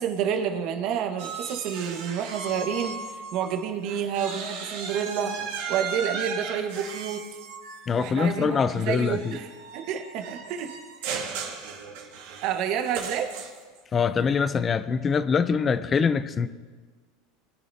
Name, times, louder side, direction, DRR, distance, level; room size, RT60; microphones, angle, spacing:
voice 1, 0.0-5.4 5.7-7.2 7.9-9.5 9.7-10.7 11.0-11.2 12.4-13.3, right 8 dB, 60° right, 5 dB, 1.5 m, -29 dB
sound 1, 1.2-3.6 3.8-13.8, right 5 dB, 75° right, 2.2 m, -36 dB
voice 2, 7.9-9.4 13.9-16.5, left 6 dB, 25° left, 13 dB, 0.6 m, -24 dB
20.5 x 9.8 x 2.9 m, 1.4 s
supercardioid pair, 115°, 0 cm